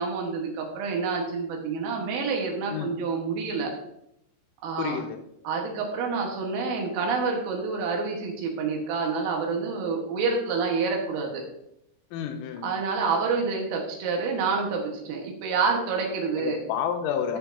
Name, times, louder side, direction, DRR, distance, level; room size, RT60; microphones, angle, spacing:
voice 1, 0.0-3.7 4.6-5.0 5.5-11.4 12.6-16.6, right 4 dB, 75° right, 1 dB, 3.8 m, -28 dB
voice 2, 4.8-5.2 12.1-12.7 16.4-17.4, left 8 dB, 85° left, 5 dB, 3.3 m, -30 dB
14.5 x 5.3 x 2.7 m, 0.79 s
omnidirectional pair, 6.0 m